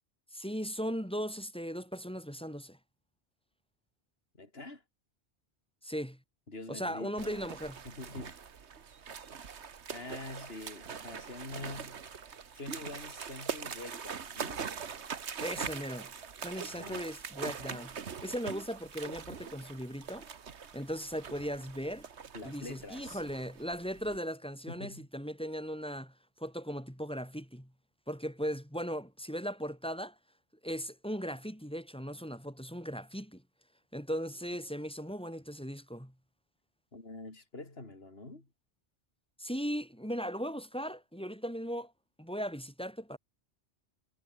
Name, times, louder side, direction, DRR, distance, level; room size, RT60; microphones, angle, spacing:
voice 1, 0.3-2.8 5.8-6.2 6.7-7.8 15.4-16.1 16.4-20.3 20.7-22.1 22.4-26.1 26.4-27.7 28.1-30.2 30.6-33.4 33.9-36.1 39.4-41.9 42.2-43.2, equal, 5° left, 6.8 m, -38 dB
voice 2, 4.4-4.8 6.5-7.5 7.8-8.4 9.9-12.0 12.5-14.6 16.4-17.1 22.3-23.2 24.7-25.1 36.9-38.5, left 2 dB, 60° left, 4.2 m, -45 dB
sound 1, 7.2-24.2, right 6 dB, 75° right, 1.6 m, -43 dB
omnidirectional pair, 1.1 m